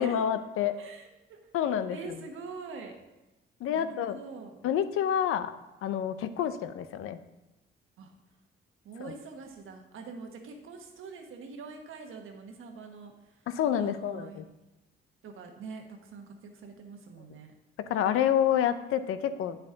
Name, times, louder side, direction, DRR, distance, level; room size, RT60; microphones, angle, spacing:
voice 1, 0.0-0.8 1.5-2.0 3.6-4.2 4.6-5.5 5.8-7.2 9.0-9.1 13.5-14.4 17.9-19.6, left 9 dB, 85° left, 12 dB, 0.6 m, -28 dB
voice 2, 0.7-1.4 1.9-3.0 3.7-4.6 8.0-8.1 8.8-13.5 13.8-14.4 15.2-17.5, right 4 dB, 75° right, 3 dB, 1.4 m, -44 dB
9.0 x 7.0 x 3.9 m, 1.0 s
cardioid pair, 100°, 21 cm